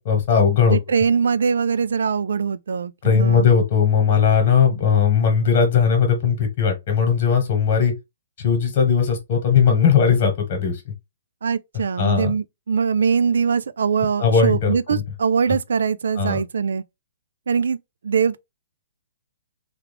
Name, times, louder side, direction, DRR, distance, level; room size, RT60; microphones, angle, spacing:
voice 1, 0.0-0.8 3.0-7.9 8.4-10.8 12.0-12.3 14.2-15.0 16.2-16.4, left 6 dB, 45° left, 1.3 m, -18 dB
voice 2, 0.7-3.5 11.4-16.8 17.5-17.8 18.0-18.4, right 6 dB, 70° right, 0.3 m, -22 dB
3.4 x 2.3 x 3.3 m
figure-of-eight pair, 120°, 0 cm